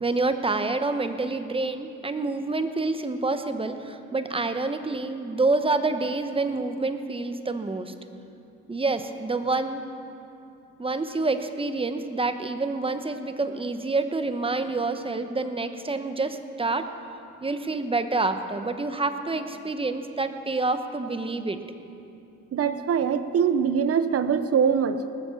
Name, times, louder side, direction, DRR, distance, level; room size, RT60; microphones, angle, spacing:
voice 1, 0.0-7.9 8.7-9.9 10.8-16.9 17.4-21.6, right 3 dB, 20° right, 8 dB, 0.9 m, -27 dB
voice 2, 22.5-25.0, right 7 dB, 50° right, 11 dB, 0.8 m, -23 dB
19.5 x 7.3 x 7.0 m, 2.6 s
cardioid pair, 90°, 30 cm